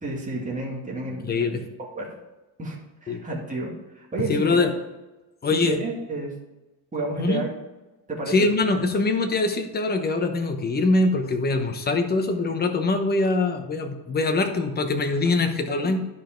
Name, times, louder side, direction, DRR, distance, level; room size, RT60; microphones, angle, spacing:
voice 1, 0.0-1.6 2.0-2.1 2.6-4.6 5.5-6.3 6.9-7.5 8.1-8.3 15.8-15.9, right 2 dB, 15° right, -2 dB, 2.1 m, -31 dB
voice 2, 1.2-1.6 3.1-3.2 4.2-4.7 5.4-5.8 7.2-7.4 8.3-16.0, left 3 dB, 20° left, 6 dB, 0.9 m, -23 dB
11.5 x 5.2 x 4.5 m, 1.1 s
cardioid pair, 150°, 44 cm